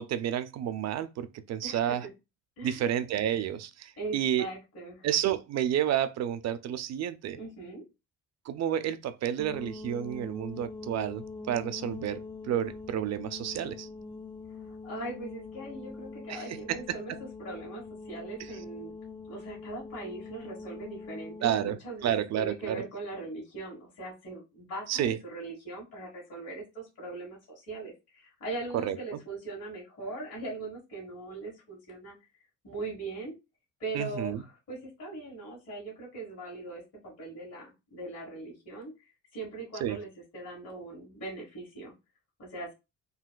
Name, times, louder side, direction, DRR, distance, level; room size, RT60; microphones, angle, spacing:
voice 1, 0.0-2.1 2.6-4.5 5.0-7.4 8.5-13.9 16.3-16.8 17.1-17.2 21.4-22.8 24.9-25.2 28.7-29.0 33.9-34.4 39.8-40.0, right 10 dB, 60° right, 0.5 m, -30 dB
voice 2, 4.0-5.1 7.4-7.8 14.8-17.1 17.4-18.9 19.3-32.2 32.6-33.3 33.8-38.9 39.3-41.9 42.4-42.7, right 2 dB, 55° left, 1.7 m, -40 dB
sound 1, 9.4-21.7, left 4 dB, 15° left, 0.3 m, -43 dB
3.9 x 2.3 x 2.3 m
cardioid pair, 90°, 30 cm